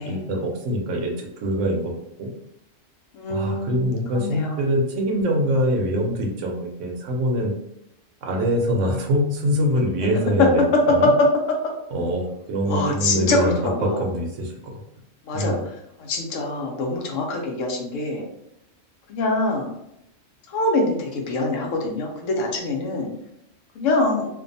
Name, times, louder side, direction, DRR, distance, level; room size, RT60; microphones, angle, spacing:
voice 1, 0.0-1.9 2.2-2.3 3.3-7.5 8.2-11.1 11.9-14.8 15.3-15.6, equal, 75° right, 1 dB, 0.9 m, -24 dB
voice 2, 3.1-3.9 4.1-4.6 10.4-10.5 11.0-11.1 12.6-14.0 15.3-15.7 16.0-18.2 19.1-19.7 20.5-23.1 23.8-24.3, left 2 dB, 85° left, 1 dB, 1.0 m, -24 dB
2.6 x 2.2 x 2.6 m, 0.79 s
omnidirectional pair, 1.3 m